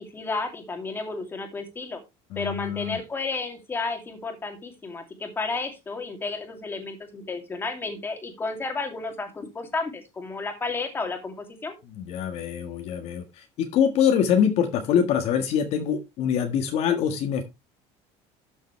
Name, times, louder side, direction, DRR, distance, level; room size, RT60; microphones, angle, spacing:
voice 1, 0.0-2.0 2.4-11.8, left 3 dB, 15° left, 5 dB, 2.5 m, -32 dB
voice 2, 2.3-3.0 11.9-17.4, left 8 dB, 50° left, 5 dB, 1.6 m, -24 dB
12.5 x 7.2 x 3.2 m, 0.23 s
cardioid pair, 155°, 14 cm